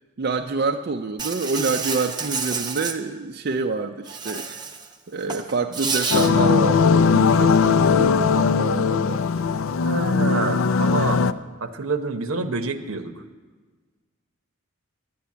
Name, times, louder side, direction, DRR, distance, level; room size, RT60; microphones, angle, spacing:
voice 1, 0.2-4.5 5.1-9.2, right 4 dB, 45° right, 5 dB, 0.4 m, -27 dB
Insect, 1.2-2.9 4.1-4.9 5.2-6.3, right 5 dB, 20° right, 0.8 m, -29 dB
sound 1, 6.1-11.3, left 5 dB, 75° left, 0.4 m, -19 dB
voice 2, 9.8-11.3 11.6-13.2, right 3 dB, 80° right, 8 dB, 0.9 m, -27 dB
11.0 x 8.9 x 8.4 m, 1.4 s
head